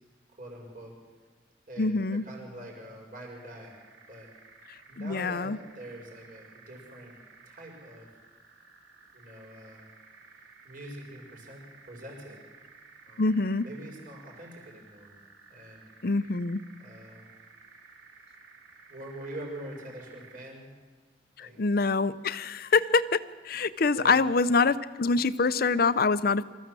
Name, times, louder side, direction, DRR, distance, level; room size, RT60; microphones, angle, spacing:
voice 1, 0.4-0.9 1.7-3.8 4.1-4.3 4.9-7.2 7.5-8.1 9.1-9.8 10.6-12.4 13.1-13.3 13.6-15.2 15.5-15.8 16.8-17.3 18.9-20.7 21.4-21.6 23.9-24.3, right 1 dB, 45° right, 0 dB, 6.0 m, -44 dB
voice 2, 1.8-2.2 5.0-5.6 13.2-13.6 16.0-16.6 21.4-26.4, left 4 dB, 50° left, 15 dB, 0.6 m, -25 dB
sound 1, 3.2-20.6, right 4 dB, 75° right, 2.5 m, -55 dB
25.0 x 14.5 x 7.6 m, 1.4 s
head